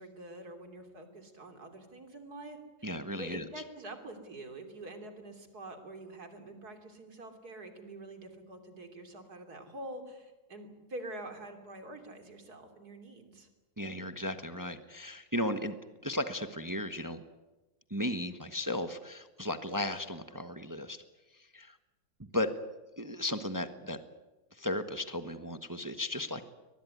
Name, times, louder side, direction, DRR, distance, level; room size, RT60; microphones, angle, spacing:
voice 1, 0.0-2.9 3.2-13.5, right 1 dB, 60° right, 6 dB, 3.5 m, -46 dB
voice 2, 2.8-3.4 13.8-15.8 16.0-17.2 17.9-21.0 21.3-21.8 22.3-22.5 23.0-24.0 24.5-26.4, left 1 dB, 15° right, 9 dB, 1.0 m, -35 dB
23.0 x 20.0 x 9.5 m, 1.1 s
omnidirectional pair, 1.9 m